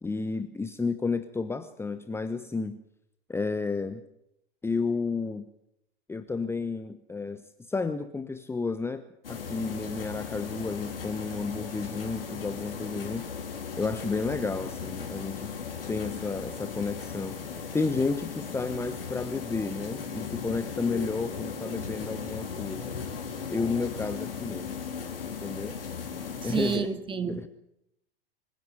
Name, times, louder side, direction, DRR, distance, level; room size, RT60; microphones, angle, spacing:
voice 1, 0.0-2.8 3.3-4.0 4.6-5.5 6.1-13.3 13.8-15.5 15.9-23.0 23.5-24.7 25.4-25.8 26.4-26.9 27.3-27.5, left 4 dB, 10° left, 1.1 m, -32 dB
sound 1, 9.2-26.8, left 6 dB, 75° left, 3.9 m, -37 dB
voice 2, 26.5-27.5, right 6 dB, 15° right, 2.5 m, -30 dB
25.5 x 16.0 x 8.0 m
figure-of-eight pair, 90°, 29 cm